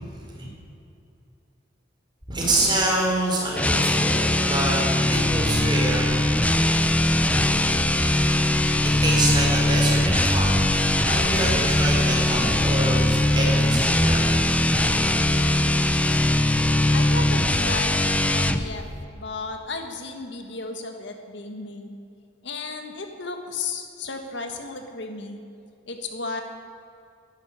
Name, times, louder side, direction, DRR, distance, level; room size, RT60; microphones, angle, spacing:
voice 1, 2.3-6.5 8.8-14.6, right 1 dB, 25° right, -2 dB, 4.4 m, -27 dB
sound 1, 3.5-18.7, left 1 dB, 5° left, 0.6 m, -21 dB
sound 2, 5.1-19.1, left 1 dB, 40° left, 0.8 m, -36 dB
voice 2, 16.9-18.8 19.1-22.0 22.4-25.4 25.9-26.4, left 3 dB, 65° left, 5 dB, 1.6 m, -34 dB
12.5 x 11.0 x 10.0 m, 2.5 s
head